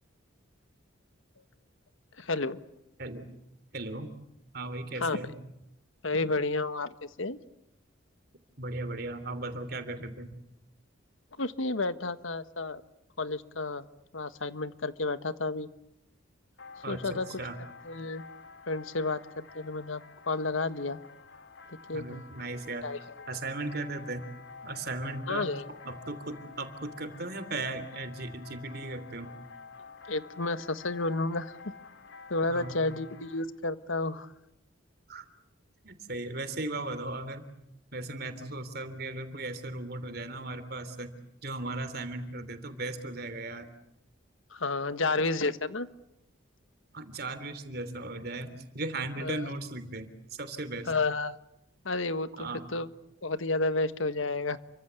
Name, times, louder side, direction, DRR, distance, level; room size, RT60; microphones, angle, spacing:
voice 1, 2.2-2.6 5.0-5.2 6.0-7.4 11.4-12.8 13.2-13.8 14.1-15.7 16.9-17.4 17.8-18.2 18.7-20.0 20.3-21.0 21.9-22.3 22.8-23.0 25.3-25.6 30.1-31.5 32.3-34.3 44.5-45.9 49.2-49.5 50.9-51.3 51.8-52.9 53.2-54.6, left 3 dB, 90° left, 12 dB, 1.5 m, -31 dB
voice 2, 3.7-4.1 4.5-5.4 8.6-10.4 16.8-17.6 21.9-22.9 23.3-24.3 24.6-25.5 25.8-29.3 32.5-32.8 35.1-35.2 35.8-37.4 37.9-41.2 41.4-43.7 46.9-50.9 52.4-52.7, right 2 dB, 50° right, 11 dB, 3.3 m, -37 dB
sound 1, 16.6-33.4, left 5 dB, 70° left, 2.9 m, -50 dB
29.5 x 24.5 x 8.3 m, 0.81 s
head